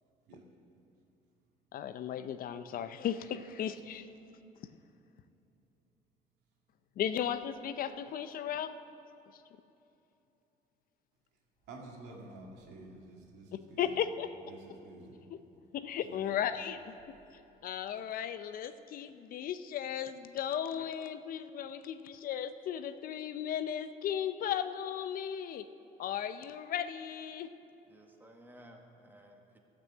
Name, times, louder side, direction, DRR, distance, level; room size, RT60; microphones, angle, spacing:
voice 1, 1.7-4.1 7.0-8.8 13.8-14.3 15.7-16.9 17.6-25.7 26.0-27.5, left 9 dB, 60° left, 11 dB, 0.6 m, -36 dB
voice 2, 11.7-14.0 14.4-15.2 16.0-16.2, right 2 dB, 85° right, 0 dB, 2.2 m, -50 dB
voice 3, 27.9-29.6, equal, 10° right, 2 dB, 1.4 m, -56 dB
14.0 x 6.2 x 7.6 m, 2.9 s
cardioid pair, 110°, 17 cm